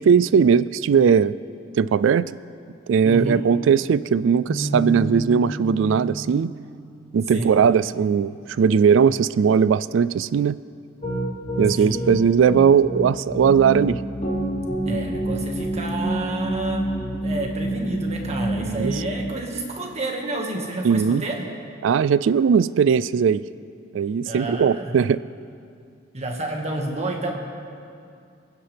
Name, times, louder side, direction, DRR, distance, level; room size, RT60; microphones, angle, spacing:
voice 1, 0.0-1.3 1.8-2.2 2.9-6.5 7.1-10.6 11.6-14.0 18.6-18.9 20.8-21.2 21.8-23.4 23.9-25.2, right 6 dB, 75° right, 17 dB, 0.3 m, -19 dB
voice 2, 3.0-3.4 7.3-7.6 11.7-12.0 14.8-21.5 24.2-24.9 26.1-27.3, right 2 dB, 35° right, 1 dB, 1.8 m, -29 dB
sound 1, 4.5-10.5, right 1 dB, ahead, 2.6 m, -35 dB
Piano, 11.0-17.5, right 1 dB, 40° left, 3.7 m, -29 dB
sound 2, 13.3-19.3, right 1 dB, 15° left, 1.2 m, -28 dB
28.0 x 9.8 x 3.4 m, 2.4 s
head